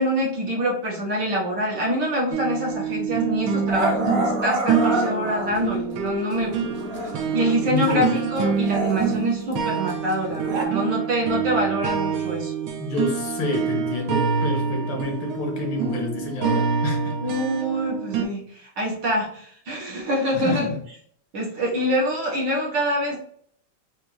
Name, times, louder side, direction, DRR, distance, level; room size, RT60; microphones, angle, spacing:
voice 1, 0.0-6.7 7.3-12.5 17.2-20.7 21.3-23.2, equal, 60° right, -4 dB, 1.8 m, -25 dB
sound 1, 2.3-18.2, right 6 dB, 80° right, 1.5 m, -26 dB
Growling, 2.7-2.9 3.7-5.8 6.3-8.1 8.4-10.6, equal, 45° right, 0.9 m, -29 dB
voice 2, 7.7-8.1 12.8-17.1 20.3-20.8, left 3 dB, 65° left, 2 dB, 1.6 m, -28 dB
4.8 x 2.6 x 3.1 m, 0.63 s
omnidirectional pair, 2.3 m